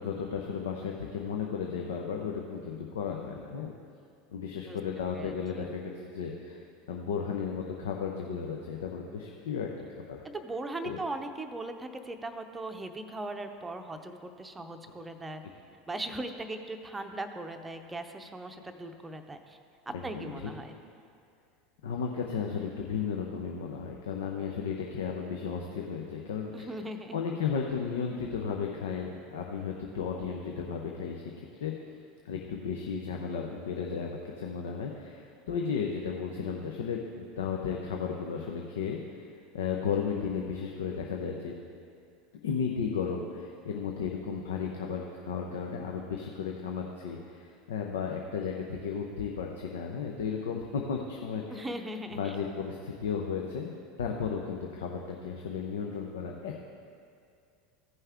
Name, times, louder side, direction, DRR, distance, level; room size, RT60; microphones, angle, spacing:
voice 1, 0.0-3.7 4.3-6.6 6.9-10.2 10.8-11.0 19.9-20.5 21.8-26.8 27.1-31.7 32.2-39.2 39.5-41.6 42.4-51.7 52.2-56.6, left 6 dB, 70° left, 1 dB, 0.6 m, -34 dB
voice 2, 5.2-5.7 10.2-15.4 15.9-19.6 19.9-20.7 26.5-27.2 51.5-52.3, right 2 dB, 15° right, 6 dB, 0.7 m, -39 dB
15.0 x 5.4 x 3.6 m, 2.4 s
figure-of-eight pair, 80°, 0 cm